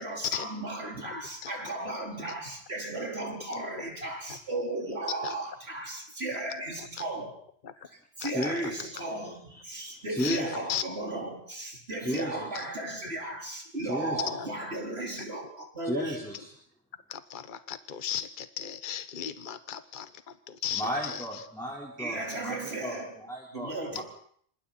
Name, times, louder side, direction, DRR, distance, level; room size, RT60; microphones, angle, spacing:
voice 1, 0.0-7.3 8.2-16.2 22.0-23.1 23.5-24.0, right 2 dB, 60° right, 0 dB, 4.9 m, -35 dB
voice 2, 1.0-1.5 2.2-2.3 3.5-3.6 5.2-5.4 6.8-7.1 7.6-7.7 8.2-8.7 9.0-9.1 10.2-10.8 12.1-12.6 14.3-14.5 15.2-15.3 17.1-21.4, left 9 dB, 45° left, 11 dB, 1.1 m, -37 dB
voice 3, 8.3-8.8 9.5-10.6 12.0-12.6 13.8-14.2 15.8-16.5 20.7-24.0, equal, ahead, -4 dB, 4.4 m, -35 dB
27.5 x 25.5 x 4.4 m, 0.63 s
omnidirectional pair, 1.2 m